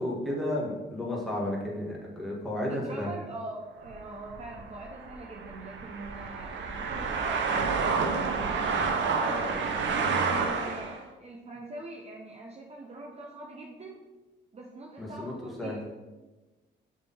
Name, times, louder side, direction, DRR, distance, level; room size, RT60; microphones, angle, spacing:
voice 1, 0.0-3.1 15.0-15.8, left 1 dB, ahead, -5 dB, 2.1 m, -32 dB
voice 2, 2.7-8.6 9.1-14.0 14.5-15.8, right 2 dB, 30° right, 0 dB, 0.8 m, -42 dB
sound 1, 3.9-11.0, right 5 dB, 65° right, 0.9 m, -29 dB
6.6 x 3.8 x 4.3 m, 1.2 s
cardioid pair, 90°, 20 cm